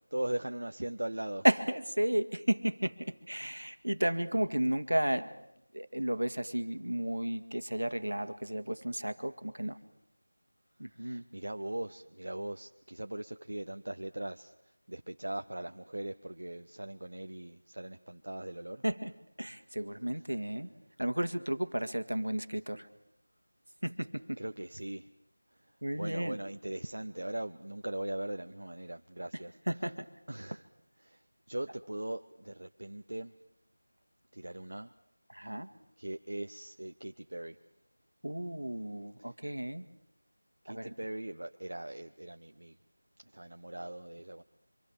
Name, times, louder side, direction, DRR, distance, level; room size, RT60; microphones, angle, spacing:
voice 1, 0.1-1.4 11.0-14.5 14.9-18.8 24.4-25.1 26.0-29.5 30.3-30.7 31.0-31.2 31.5-33.3 34.3-34.9 36.0-37.6 40.6-42.7 43.3-44.4, right 1 dB, 70° right, 6 dB, 0.9 m, -39 dB
voice 2, 1.4-5.3 5.7-9.8 10.8-11.2 18.8-19.1 19.4-20.7 21.0-22.9 23.8-24.4 25.8-26.4 29.7-30.1 35.3-35.7 38.2-39.9 40.7-41.0, right 1 dB, 85° right, 9 dB, 1.9 m, -33 dB
26.0 x 24.0 x 7.3 m, 0.84 s
figure-of-eight pair, 170°, 0 cm